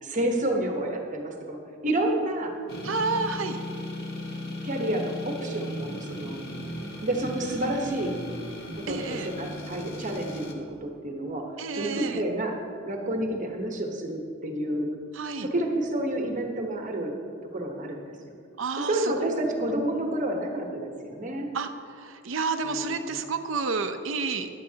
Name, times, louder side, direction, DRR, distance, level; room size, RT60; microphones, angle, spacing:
voice 1, 0.0-2.5 4.4-6.5 7.0-8.2 8.7-11.5 11.7-12.5 12.8-14.9 15.4-17.2 17.5-18.1 18.8-21.5 22.6-23.2, right 1 dB, 40° right, 2 dB, 1.1 m, -29 dB
sound 1, 2.7-10.5, left 1 dB, 55° left, 1.5 m, -37 dB
voice 2, 2.8-3.6 8.9-9.3 11.6-12.2 15.1-15.5 18.6-19.4 21.5-21.7 22.0-24.5, right 4 dB, 85° right, 7 dB, 0.7 m, -30 dB
16.0 x 11.0 x 2.9 m, 2.4 s
head